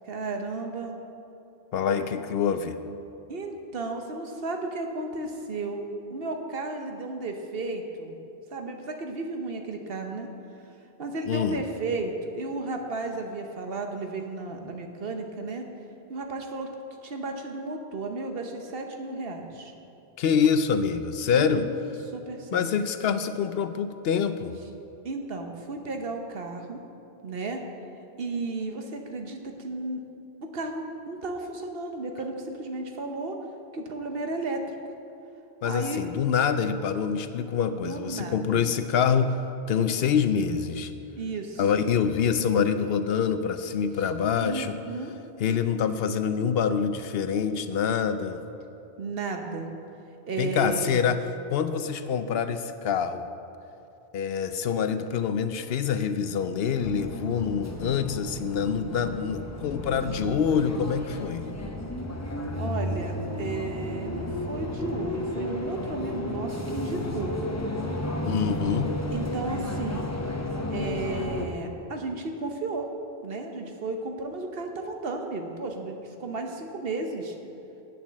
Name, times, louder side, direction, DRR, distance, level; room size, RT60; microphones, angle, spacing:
voice 1, 0.0-0.9 3.3-5.8 6.1-8.2 8.5-10.3 11.0-15.7 16.1-16.7 17.0-19.7 21.3-21.7 22.1-22.7 25.0-26.8 27.2-27.6 28.2-30.0 30.4-33.4 33.7-34.6 35.6-36.0 37.7-38.6 41.1-41.9 44.4-45.1 49.0-49.7 50.3-51.0 62.6-67.4 69.1-70.1 70.7-72.9 73.2-77.4, right 3 dB, 65° right, 4 dB, 1.1 m, -33 dB
voice 2, 1.7-2.8 11.3-11.6 20.2-21.7 22.5-24.6 35.6-39.4 39.7-40.9 41.6-44.8 45.4-48.4 50.4-51.2 51.5-53.2 54.1-61.5 68.2-68.9, left 7 dB, 70° left, 10 dB, 0.7 m, -26 dB
sound 1, 56.8-71.5, left 1 dB, 15° left, 0.7 m, -33 dB
8.6 x 7.3 x 7.3 m, 2.8 s
omnidirectional pair, 1.1 m